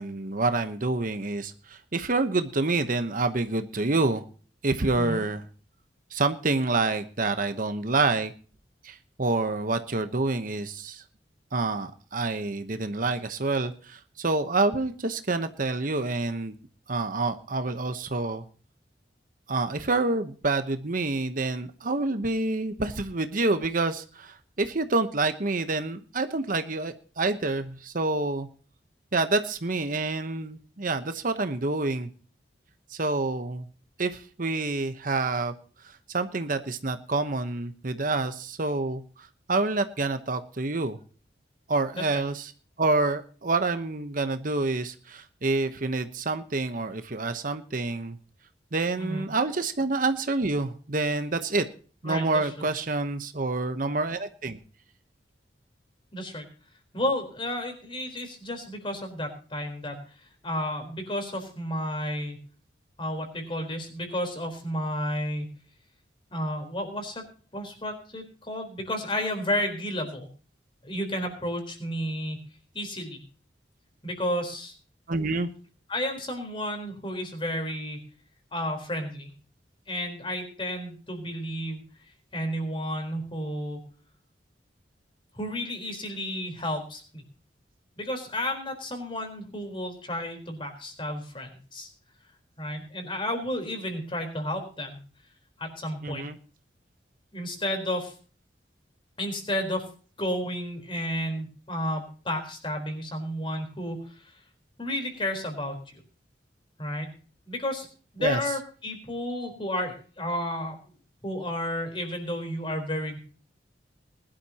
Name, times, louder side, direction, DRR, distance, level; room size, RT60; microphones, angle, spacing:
voice 1, 0.0-4.2 4.6-5.4 6.1-8.3 8.8-11.0 11.5-16.6 16.9-18.4 19.5-28.5 29.1-32.1 32.9-33.7 34.0-35.5 35.8-41.0 41.7-42.5 42.8-48.2 48.7-51.7 52.0-54.6 75.1-75.5 96.0-96.4 108.2-108.5, right 3 dB, 50° right, 9 dB, 1.0 m, -27 dB
voice 2, 52.0-52.7 56.1-56.4 56.9-59.9 60.4-62.4 63.0-65.5 66.3-67.2 67.5-70.3 70.8-72.4 72.7-73.2 74.0-74.7 75.9-78.0 78.5-79.3 79.9-81.8 82.3-83.8 85.3-87.2 88.0-91.9 92.6-95.0 95.6-96.2 97.3-98.1 99.2-99.8 100.2-104.3 104.8-105.9 106.8-107.1 107.5-107.9 108.1-110.8 111.2-113.2, left 1 dB, 30° left, 5 dB, 4.1 m, -32 dB
20.5 x 11.5 x 2.9 m, 0.40 s
head